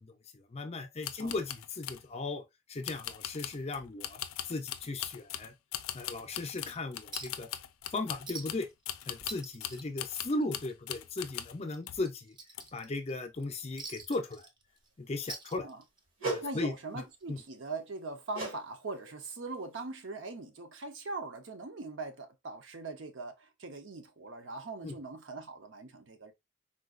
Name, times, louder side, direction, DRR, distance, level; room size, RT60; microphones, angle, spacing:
voice 1, 0.0-2.4 2.7-5.5 5.9-7.5 7.9-8.7 9.1-12.4 12.7-14.5 15.0-15.7 16.2-17.0 17.3-17.4 24.8-24.9, left 2 dB, 30° left, 0.5 m, -37 dB
sound 1, 1.0-2.1 2.8-11.6 11.9-12.1 12.5-13.0 13.3-13.5, left 11 dB, 85° left, 0.4 m, -41 dB
Chink clink, 7.1-7.5 7.8-7.9 8.2-8.7 9.0-10.7 11.0-11.2 11.7-13.1 13.8-14.9 15.2-16.1 17.2-17.3, right 3 dB, 20° right, 0.5 m, -45 dB
sound 2, 16.2-16.5 18.3-18.6 18.9-19.2 19.7-19.8, right 2 dB, 80° right, 1.5 m, -35 dB
voice 2, 16.4-26.3, right 3 dB, 65° right, 0.6 m, -41 dB
3.8 x 2.3 x 2.4 m
head